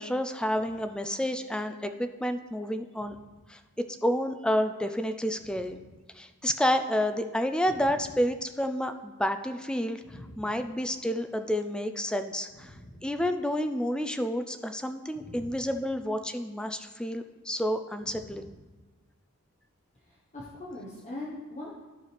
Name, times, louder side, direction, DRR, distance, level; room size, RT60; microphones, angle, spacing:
voice 1, 0.0-3.2 3.5-3.6 4.0-5.8 6.2-12.7 13.0-18.5, equal, 5° left, 8 dB, 0.3 m, -30 dB
voice 2, 10.0-10.4 12.6-13.0 15.1-15.7 18.1-18.5 20.1-21.7, left 1 dB, 35° left, -6 dB, 1.1 m, -43 dB
12.5 x 4.9 x 3.3 m, 1.3 s
head